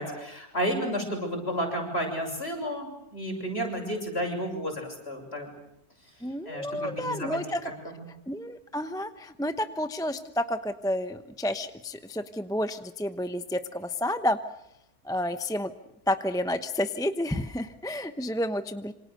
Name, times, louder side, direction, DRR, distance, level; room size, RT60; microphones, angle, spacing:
voice 1, 0.0-5.5 6.5-7.4 7.9-8.1, equal, 40° left, 2 dB, 7.0 m, -32 dB
voice 2, 6.2-7.6 8.3-14.4 15.0-15.7 16.1-18.9, left 1 dB, 5° left, 10 dB, 0.8 m, -30 dB
27.5 x 26.0 x 6.7 m, 0.83 s
omnidirectional pair, 1.6 m